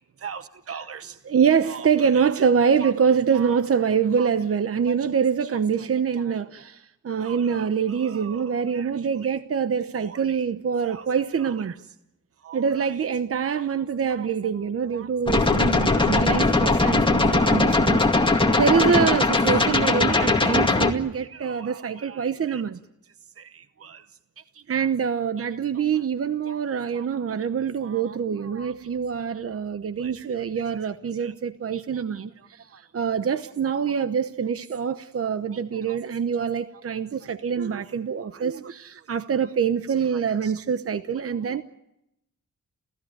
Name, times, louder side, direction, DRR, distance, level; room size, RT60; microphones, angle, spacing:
voice 1, 0.7-11.8 12.4-22.8 23.4-24.0 24.5-41.6, right 6 dB, 50° right, 0.9 m, -25 dB
sound 1, 15.3-20.9, left 2 dB, 15° left, 2.2 m, -20 dB
29.5 x 16.5 x 9.3 m
wide cardioid pair, 120°, 30 cm